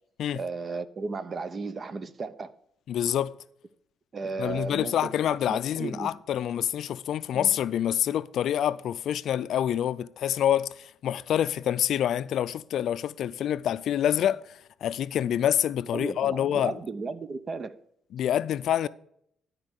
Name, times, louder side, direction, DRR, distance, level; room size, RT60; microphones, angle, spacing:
voice 1, 0.4-2.5 4.1-5.1 5.5-6.2 7.3-7.5 15.9-17.7, right 4 dB, 40° right, 0.7 m, -35 dB
voice 2, 2.9-3.4 4.4-16.8 18.1-18.9, left 10 dB, 70° left, 0.4 m, -27 dB
12.0 x 4.5 x 6.4 m
cardioid pair, 90°, 0 cm